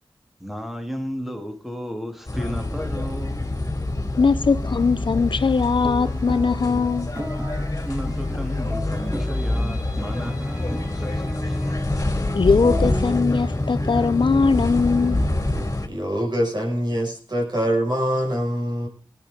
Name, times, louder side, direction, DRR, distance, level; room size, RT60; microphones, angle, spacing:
voice 1, 0.4-3.6 7.8-12.1, equal, 5° right, 2.7 m, -34 dB
sound 1, 2.3-15.9, left 2 dB, 35° left, 2.8 m, -26 dB
voice 2, 4.2-7.1 12.3-15.2, left 4 dB, 65° left, 0.6 m, -20 dB
sound 2, 5.2-15.7, equal, 20° right, 3.4 m, -37 dB
voice 3, 15.9-18.9, equal, 55° right, 5.9 m, -24 dB
20.0 x 10.5 x 3.8 m
cardioid pair, 45°, 9 cm